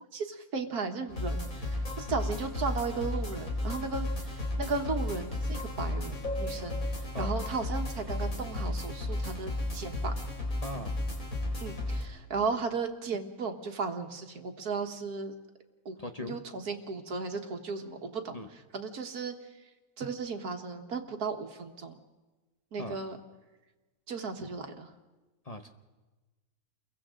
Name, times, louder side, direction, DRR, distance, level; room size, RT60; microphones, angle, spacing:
voice 1, 0.1-10.1 11.6-15.3 15.9-19.4 20.0-22.0 22.7-23.2 24.1-24.9, right 4 dB, 80° right, 5 dB, 2.0 m, -35 dB
sound 1, 1.1-12.0, left 1 dB, 60° left, 4.2 m, -34 dB
voice 2, 10.6-11.0 16.0-16.4 18.3-18.5 22.8-23.0 25.4-25.7, left 1 dB, 30° left, 5 dB, 0.9 m, -39 dB
30.0 x 22.5 x 3.8 m, 1.2 s
omnidirectional pair, 1.6 m